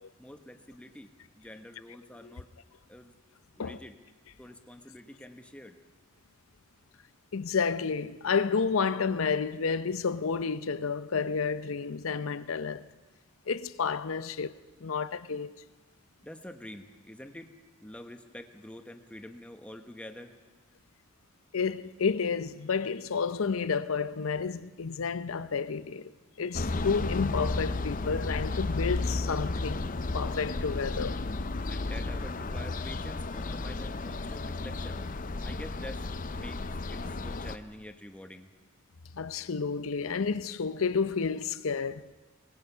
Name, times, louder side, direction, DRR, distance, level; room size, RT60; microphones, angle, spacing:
voice 1, 0.2-2.5 2.9-3.2 3.6-4.0 4.4-5.8 16.2-17.5 17.8-20.3 31.7-35.0 35.4-38.5, left 1 dB, 5° left, 1.1 m, -47 dB
voice 2, 7.3-12.9 13.5-14.5 14.8-15.6 21.5-26.1 26.4-29.8 30.1-31.2 39.1-42.1, left 5 dB, 90° left, 0.6 m, -30 dB
sound 1, 26.5-37.6, left 3 dB, 40° left, 0.6 m, -33 dB
24.0 x 19.0 x 5.6 m
head